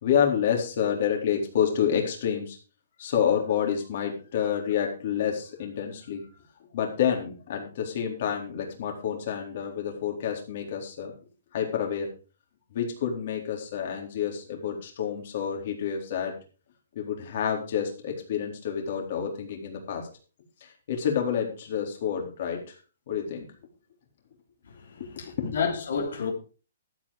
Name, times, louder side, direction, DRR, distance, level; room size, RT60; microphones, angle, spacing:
voice 1, 0.0-2.6 3.0-6.4 6.7-11.1 11.5-12.1 12.7-16.3 17.0-20.1 20.6-22.8 23.1-23.5 25.3-25.6, left 8 dB, 45° left, 3.9 m, -28 dB
voice 2, 24.7-26.3, left 6 dB, 75° left, 3.5 m, -31 dB
13.5 x 8.4 x 4.9 m
hypercardioid pair, 165°, 0 cm